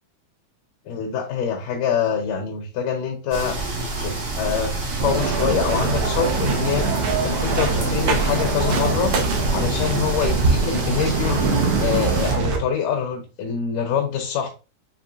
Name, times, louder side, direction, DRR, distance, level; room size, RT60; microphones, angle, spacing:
voice 1, 0.9-3.6 4.0-4.7 5.0-9.1 9.5-11.4 11.8-14.5, left 7 dB, 80° left, 2 dB, 2.0 m, -25 dB
sound 1, 3.3-12.3, right 3 dB, 70° right, 1.0 m, -26 dB
sound 2, 5.0-12.6, right 4 dB, 90° right, 1.3 m, -24 dB
6.8 x 3.0 x 2.5 m, 0.32 s
omnidirectional pair, 4.1 m